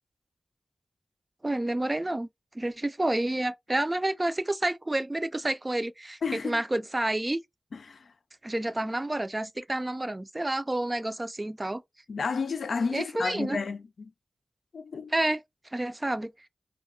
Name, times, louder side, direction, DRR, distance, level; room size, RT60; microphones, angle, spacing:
voice 1, 1.4-2.3 2.5-7.4 8.4-11.8 12.9-13.6 15.1-15.4 15.7-16.3, right 1 dB, 30° right, 0.4 m, -29 dB
voice 2, 6.2-6.6 7.7-8.1 12.1-14.1 14.7-15.1, left 5 dB, 85° left, 0.3 m, -32 dB
2.3 x 2.1 x 3.6 m
cardioid pair, 45°, 0 cm